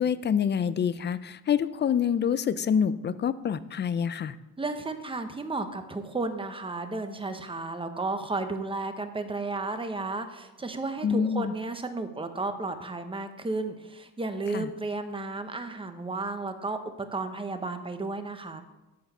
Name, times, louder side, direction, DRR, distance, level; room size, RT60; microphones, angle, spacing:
voice 1, 0.0-4.3 11.0-11.5 14.5-14.6, left 7 dB, 30° left, 15 dB, 0.4 m, -26 dB
voice 2, 4.6-18.6, right 3 dB, 15° right, 8 dB, 0.9 m, -33 dB
14.0 x 4.7 x 5.5 m, 1.0 s
cardioid pair, 110°, 36 cm